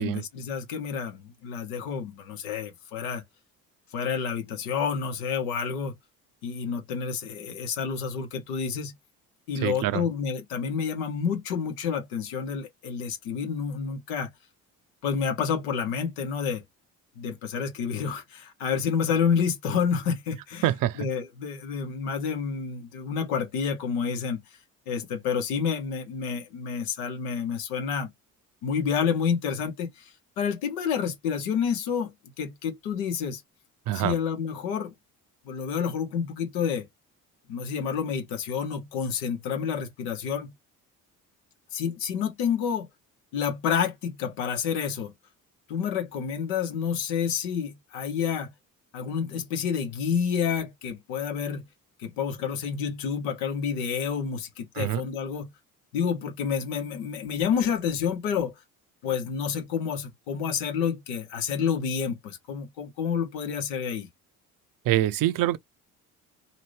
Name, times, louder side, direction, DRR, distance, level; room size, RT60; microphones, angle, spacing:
voice 1, 0.0-3.2 3.9-5.9 6.4-8.9 9.5-14.3 15.0-16.6 17.2-20.6 21.0-24.4 24.9-28.1 28.6-33.4 33.9-34.9 35.4-36.9 37.5-40.5 41.7-42.9 43.3-45.1 45.7-48.5 48.9-51.6 52.0-55.5 55.9-58.5 59.0-64.1, left 7 dB, 75° left, 1.0 m, -29 dB
voice 2, 9.6-10.1 20.6-21.1 33.9-34.2 54.7-55.0 64.8-65.6, right 14 dB, 50° right, 0.6 m, -25 dB
2.8 x 2.6 x 3.1 m
hypercardioid pair, 50°, 45 cm